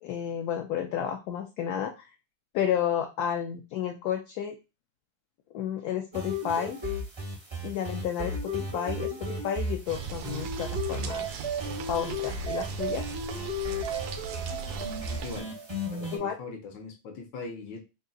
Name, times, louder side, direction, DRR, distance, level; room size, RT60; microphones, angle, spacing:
voice 1, 0.0-2.1 2.5-4.6 5.5-6.8 7.6-11.3 11.9-13.1 16.1-16.4, left 9 dB, 70° left, 3 dB, 1.0 m, -31 dB
sound 1, 6.1-16.2, equal, 35° right, 0.4 m, -34 dB
sound 2, 9.9-15.4, right 7 dB, 70° right, 1.0 m, -38 dB
voice 2, 15.0-15.5 15.9-17.8, left 4 dB, 85° left, 2 dB, 1.7 m, -41 dB
3.6 x 2.4 x 3.8 m, 0.27 s
omnidirectional pair, 1.9 m